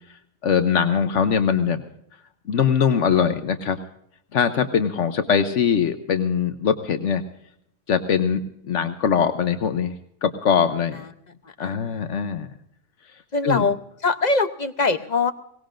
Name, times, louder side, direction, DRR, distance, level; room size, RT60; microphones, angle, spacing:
voice 1, 0.4-1.8 2.5-3.8 4.3-7.2 7.9-9.9 10.2-11.0 11.6-12.5 13.4-13.6, left 7 dB, 75° left, 8 dB, 1.2 m, -22 dB
voice 2, 11.6-12.1 13.3-15.3, left 3 dB, 40° left, 9 dB, 0.8 m, -24 dB
22.5 x 18.5 x 2.5 m, 0.73 s
omnidirectional pair, 1.2 m